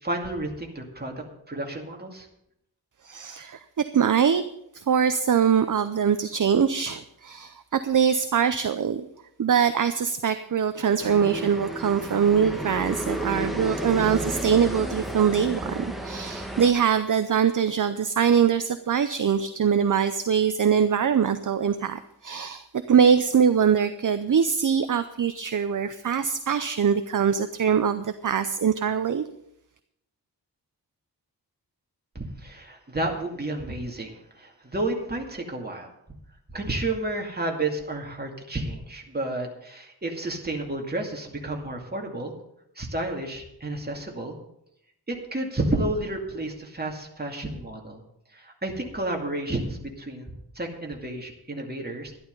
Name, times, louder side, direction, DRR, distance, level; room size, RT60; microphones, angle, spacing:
voice 1, 0.0-2.3 32.1-35.9 36.5-42.3 42.8-44.4 45.1-48.0 48.3-52.1, right 2 dB, 25° right, 1 dB, 2.5 m, -31 dB
voice 2, 3.0-4.4 4.7-9.0 9.4-29.2, right 7 dB, 50° right, 10 dB, 0.7 m, -23 dB
sound 1, 11.0-16.7, right 1 dB, ahead, 1.5 m, -32 dB
12.5 x 11.5 x 5.4 m, 0.78 s
wide cardioid pair, 125°, 42 cm